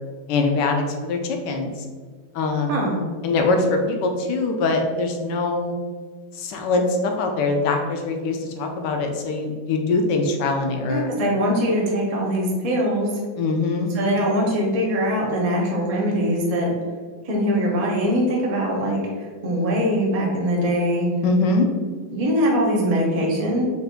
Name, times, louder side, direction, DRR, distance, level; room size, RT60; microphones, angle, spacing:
voice 1, 0.3-1.8 2.3-2.8 3.2-5.8 6.3-11.1 13.4-13.9 21.2-21.7, left 3 dB, 70° left, 3 dB, 1.1 m, -23 dB
voice 2, 10.9-13.1 13.9-16.7 17.2-21.1 22.1-23.6, equal, 50° right, -2 dB, 0.4 m, -22 dB
5.7 x 2.6 x 3.7 m, 1.5 s
omnidirectional pair, 2.2 m